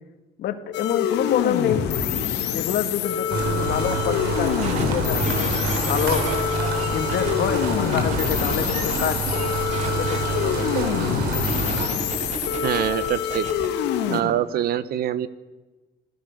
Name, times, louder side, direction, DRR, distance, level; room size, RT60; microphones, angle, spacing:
voice 1, 0.4-1.8 2.5-6.5 6.9-9.7 10.0-10.7, left 9 dB, 70° left, 8 dB, 2.0 m, -27 dB
sound 1, 0.7-14.2, left 9 dB, 90° left, 2.4 m, -26 dB
sound 2, 3.3-11.9, right 4 dB, 80° right, 4.0 m, -27 dB
sound 3, 4.6-7.3 7.9-9.4 9.7-10.2 11.4-13.7 14.3-14.4, right 5 dB, 45° right, 2.9 m, -34 dB
voice 2, 12.5-13.5 14.1-15.3, right 11 dB, 65° right, 15 dB, 1.2 m, -24 dB
26.5 x 16.5 x 6.6 m, 1.2 s
cardioid pair, 110°, 17 cm